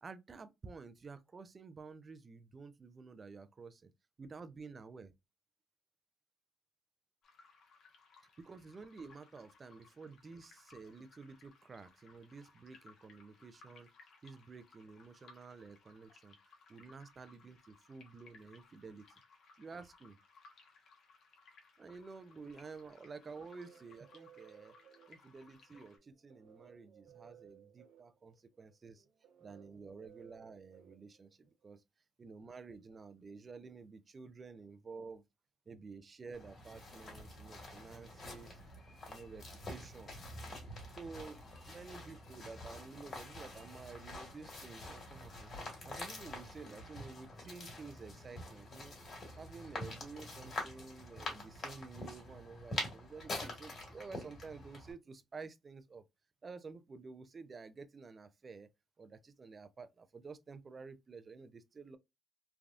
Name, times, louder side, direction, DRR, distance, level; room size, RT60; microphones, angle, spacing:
voice 1, 0.0-3.9 4.2-5.1 8.4-13.9 14.2-19.1 19.6-20.2 21.8-24.8 25.1-29.0 29.4-31.8 32.2-35.2 35.7-38.6 39.1-40.1 41.0-41.4 41.7-45.5 45.8-48.9 49.4-56.0 56.4-58.7 59.0-62.0, right 4 dB, 35° right, 0.4 m, -51 dB
sound 1, 7.2-26.0, left 4 dB, 65° left, 1.0 m, -63 dB
sound 2, 23.0-31.7, right 10 dB, 85° right, 0.9 m, -62 dB
sound 3, 36.3-54.9, left 2 dB, 50° left, 1.9 m, -46 dB
3.3 x 2.3 x 2.4 m
cardioid pair, 90°, 0 cm